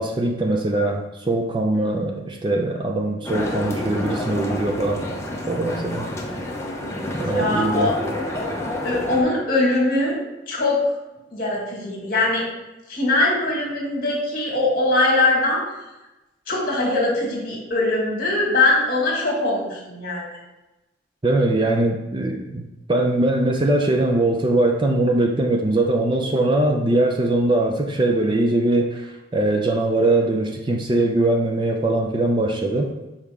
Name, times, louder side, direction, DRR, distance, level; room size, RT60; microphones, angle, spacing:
voice 1, 0.0-5.0 5.5-6.1 7.1-8.0 21.2-22.6 22.9-32.9, right 2 dB, 25° right, 1 dB, 0.5 m, -21 dB
voice 2, 1.7-2.2 6.9-7.9 8.8-10.2 10.5-10.8 11.3-12.4 12.9-15.6 16.5-20.4, left 2 dB, 50° left, -2 dB, 1.9 m, -22 dB
sound 1, 3.3-9.2, left 1 dB, 15° left, 0.7 m, -29 dB
6.8 x 4.3 x 3.5 m, 1.0 s
head